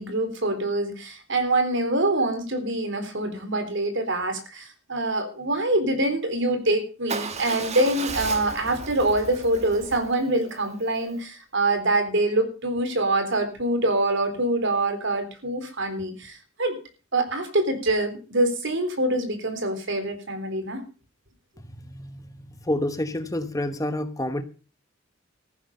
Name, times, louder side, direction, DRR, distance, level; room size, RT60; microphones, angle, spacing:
voice 1, 0.0-16.8 17.1-20.8, right 2 dB, 60° right, 8 dB, 3.8 m, -25 dB
Motorcycle / Engine starting / Idling, 7.1-11.2, right 4 dB, 35° right, 1.5 m, -35 dB
voice 2, 22.6-24.4, left 1 dB, 15° left, 10 dB, 1.1 m, -28 dB
14.5 x 11.0 x 5.5 m, 0.35 s
head